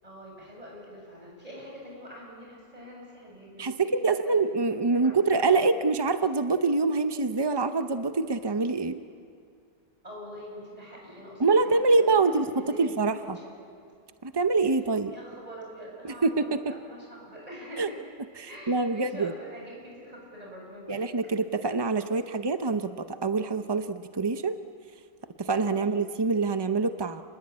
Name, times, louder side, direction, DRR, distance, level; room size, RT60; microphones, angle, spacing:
voice 1, 0.0-3.8 4.0-5.9 10.0-13.2 13.4-13.5 15.1-18.0 18.5-21.2 25.8-26.1, equal, 25° right, -2 dB, 8.0 m, -45 dB
voice 2, 3.6-9.0 11.4-13.4 14.2-15.1 16.0-16.6 17.8-17.9 18.4-19.3 20.9-24.6 25.4-27.2, right 3 dB, 40° right, 9 dB, 0.3 m, -25 dB
29.5 x 21.0 x 8.6 m, 2.3 s
omnidirectional pair, 1.6 m